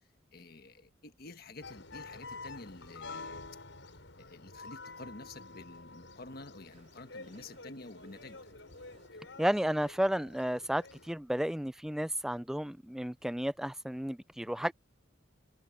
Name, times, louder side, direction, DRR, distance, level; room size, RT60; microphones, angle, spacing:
voice 1, 0.3-3.5 4.2-8.5, left 2 dB, 50° left, 1.4 m, -49 dB
sound 1, 1.6-11.1, left 3 dB, 70° left, 6.9 m, -49 dB
sound 2, 6.7-10.6 11.3-11.4 11.5-11.6 11.8-11.9 12.3-12.4, right 2 dB, 40° right, 4.0 m, -65 dB
voice 2, 9.4-14.7, equal, ahead, 0.3 m, -32 dB
head